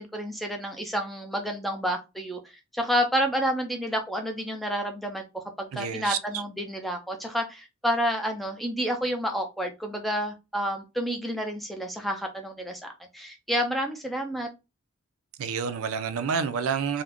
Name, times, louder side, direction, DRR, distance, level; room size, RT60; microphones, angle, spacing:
voice 1, 0.0-5.2 5.6-14.5, equal, ahead, 0.3 m, -29 dB
voice 2, 5.7-6.2 15.4-17.0, right 6 dB, 85° right, 0.4 m, -28 dB
2.4 x 2.1 x 3.5 m
head